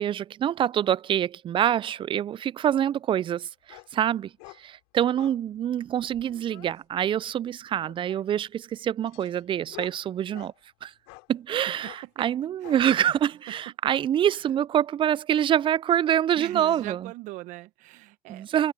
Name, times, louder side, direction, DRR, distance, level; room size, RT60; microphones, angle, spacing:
voice 1, 0.0-4.3 4.6-10.5 10.8-10.9 11.3-17.1 18.3-18.7, right 10 dB, 40° right, 0.4 m, -26 dB
sound 1, 3.7-3.9 4.4-4.6 5.1-5.4 6.0-6.7 7.8-8.4 9.1-10.6 11.1-11.3 11.8-12.0 12.6-12.8, left 31 dB, 75° left, 3.0 m, -48 dB
voice 2, 16.4-18.5, right 19 dB, 65° right, 1.2 m, -40 dB
hypercardioid pair, 75°, 14 cm